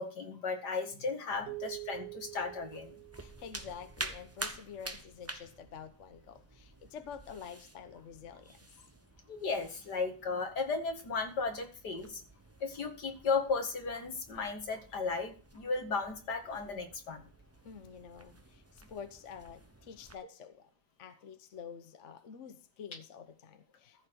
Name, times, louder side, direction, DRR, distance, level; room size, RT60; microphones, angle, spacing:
voice 1, 0.0-2.9 9.3-12.2 12.6-17.2, left 4 dB, 75° left, 5 dB, 2.5 m, -35 dB
sound 1, 1.3-20.2, right 2 dB, 15° right, 0.7 m, -49 dB
sound 2, 1.5-4.0, right 25 dB, 60° right, 0.7 m, -46 dB
voice 2, 3.2-8.6 17.6-20.7 21.0-24.1, left 7 dB, 50° left, 9 dB, 1.2 m, -48 dB
14.5 x 5.9 x 4.6 m, 0.38 s
omnidirectional pair, 1.8 m